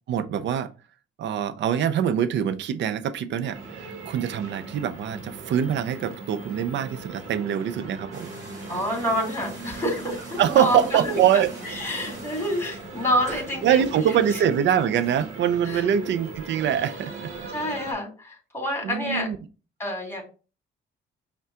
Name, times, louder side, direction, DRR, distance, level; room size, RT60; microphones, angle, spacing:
voice 1, 0.1-0.7 1.2-8.3 8.7-8.8 10.4-11.5 13.6-17.3 18.8-19.4, right 9 dB, 65° right, 0.5 m, -24 dB
sound 1, 3.5-17.9, right 3 dB, 85° right, 1.0 m, -39 dB
sound 2, 8.1-17.6, equal, 15° right, 1.8 m, -47 dB
voice 2, 8.7-13.9 14.3-14.4 15.6-16.1 17.5-19.3 19.8-20.2, equal, 10° left, 2.3 m, -28 dB
5.5 x 2.3 x 3.6 m
cardioid pair, 90°, 20 cm